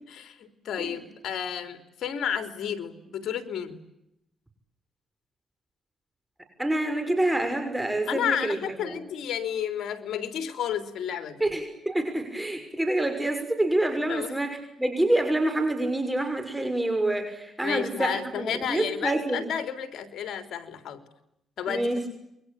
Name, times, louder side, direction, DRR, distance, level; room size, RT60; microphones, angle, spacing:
voice 1, 0.1-3.8 8.1-11.4 14.1-14.3 17.6-21.0 21.6-22.1, left 9 dB, 70° left, 8 dB, 3.5 m, -32 dB
voice 2, 6.6-9.0 11.4-19.4 21.7-22.0, right 1 dB, 10° right, 6 dB, 6.2 m, -27 dB
29.0 x 23.0 x 8.7 m, 0.81 s
cardioid pair, 80°, 0 cm